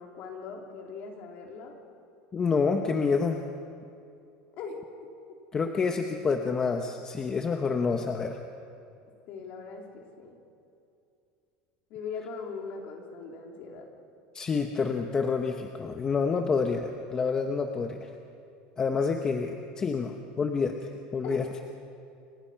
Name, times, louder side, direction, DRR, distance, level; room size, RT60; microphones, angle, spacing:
voice 1, 0.0-1.8 4.6-4.8 9.3-10.4 11.9-13.9 21.2-21.4, left 5 dB, 45° left, 1 dB, 3.9 m, -40 dB
voice 2, 2.3-3.4 5.5-8.4 14.3-18.1 18.8-21.4, left 5 dB, 20° left, 4 dB, 1.0 m, -28 dB
30.0 x 25.5 x 5.9 m, 2.6 s
cardioid pair, 170°, 4 cm